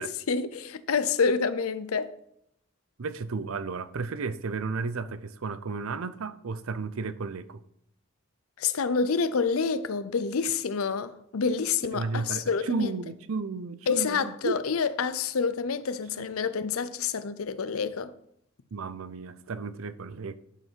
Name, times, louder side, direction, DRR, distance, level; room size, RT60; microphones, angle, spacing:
voice 1, 0.0-2.1 8.6-12.9 13.9-18.1, left 5 dB, 80° left, 0.6 m, -28 dB
voice 2, 3.0-7.6 11.4-14.5 16.1-16.3 18.7-20.4, right 4 dB, 75° right, 0.6 m, -33 dB
11.0 x 5.7 x 4.6 m
head